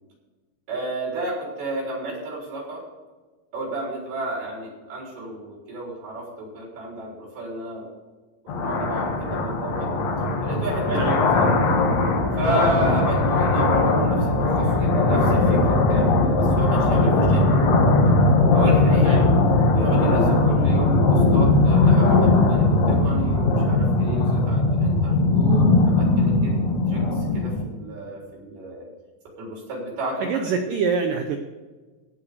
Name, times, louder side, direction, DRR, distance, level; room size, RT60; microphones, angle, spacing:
voice 1, 0.7-2.8 3.5-7.9 8.5-9.9 10.4-11.0 11.3-11.5 12.4-17.7 18.5-19.2 19.7-26.6 26.9-28.9 29.4-30.3, right 1 dB, 65° right, -2 dB, 5.8 m, -32 dB
sound 1, 8.5-27.6, left 2 dB, 55° left, 2.0 m, -19 dB
voice 2, 30.2-31.4, right 5 dB, 85° right, 5 dB, 1.9 m, -25 dB
17.0 x 5.8 x 6.7 m, 1.3 s
omnidirectional pair, 5.0 m